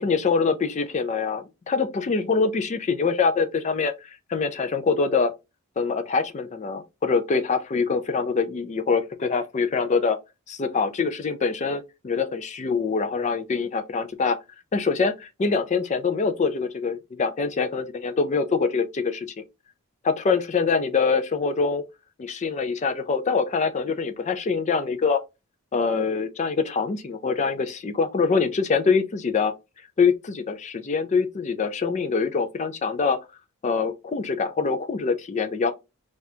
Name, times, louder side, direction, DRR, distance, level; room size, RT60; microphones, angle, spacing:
voice 1, 0.0-3.9 4.3-5.3 5.8-10.2 10.5-14.4 14.7-19.3 20.0-21.8 22.2-25.2 25.7-29.5 30.0-33.2 33.6-35.7, left 5 dB, 30° left, 0.4 m, -24 dB
4.1 x 2.4 x 2.7 m
head